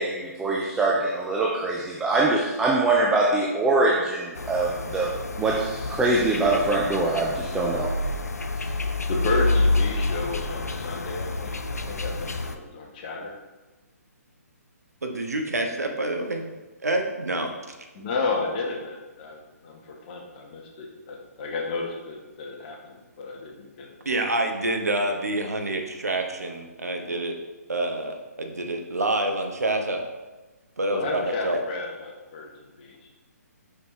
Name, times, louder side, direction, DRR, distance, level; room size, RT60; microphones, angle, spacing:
voice 1, 0.0-5.1 5.4-7.9, right 2 dB, 5° right, -2 dB, 0.3 m, -23 dB
sound 1, 4.4-12.6, left 2 dB, 70° left, 0.5 m, -28 dB
voice 2, 9.1-13.3 17.9-23.9 30.9-32.5 32.8-33.0, left 3 dB, 30° left, 0 dB, 1.1 m, -32 dB
voice 3, 15.0-16.4 16.8-17.5 24.0-27.3 27.7-30.0 30.8-31.6, right 2 dB, 70° right, 4 dB, 1.0 m, -27 dB
6.5 x 5.5 x 3.2 m, 1.2 s
figure-of-eight pair, 130°, 9 cm